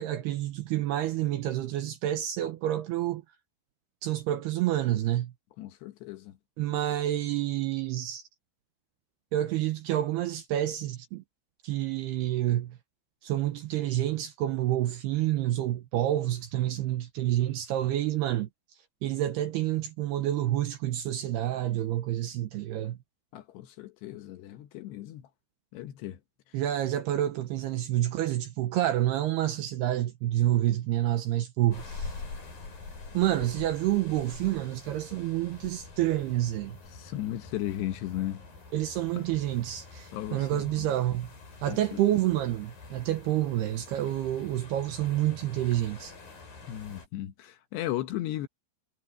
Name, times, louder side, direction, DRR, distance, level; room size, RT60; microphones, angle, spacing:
voice 1, 0.0-3.2 4.0-5.3 6.6-8.2 9.3-11.2 11.6-12.8 13.2-18.5 19.0-23.0 26.5-32.2 33.1-36.8 38.7-41.3 41.6-46.1, right 13 dB, 75° right, 2.5 m, -28 dB
voice 2, 5.6-6.4 6.7-6.8 23.3-25.3 25.7-26.2 36.9-38.4 39.1-39.2 40.1-40.9 41.7-42.0 46.7-48.5, left 14 dB, 70° left, 2.9 m, -36 dB
sound 1, 31.7-47.1, left 3 dB, 45° left, 8.5 m, -45 dB
omnidirectional pair, 5.6 m